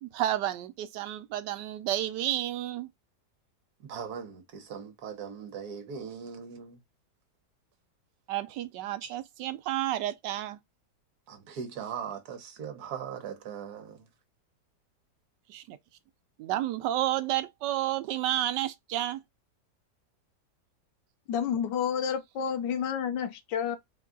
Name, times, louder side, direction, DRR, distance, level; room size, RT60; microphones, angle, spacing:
voice 1, 0.0-2.9 8.3-10.6 15.5-15.8 16.4-19.2, right 13 dB, 85° right, 1.2 m, -31 dB
voice 2, 3.8-6.8 9.0-9.1 11.3-14.1, right 7 dB, 65° right, 1.4 m, -39 dB
voice 3, 21.3-23.8, left 8 dB, 90° left, 1.4 m, -30 dB
4.3 x 2.3 x 3.6 m
omnidirectional pair, 1.8 m